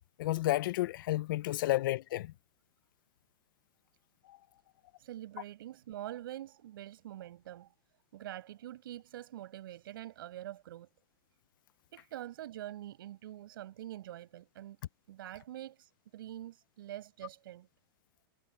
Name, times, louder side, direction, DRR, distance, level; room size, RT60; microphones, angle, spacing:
voice 1, 0.2-2.3 4.3-4.4, left 16 dB, 65° left, 0.5 m, -31 dB
voice 2, 5.0-7.7 8.1-10.9 11.9-14.8 15.1-17.7, right 13 dB, 75° right, 6.4 m, -45 dB
supercardioid pair, 165°, 12 cm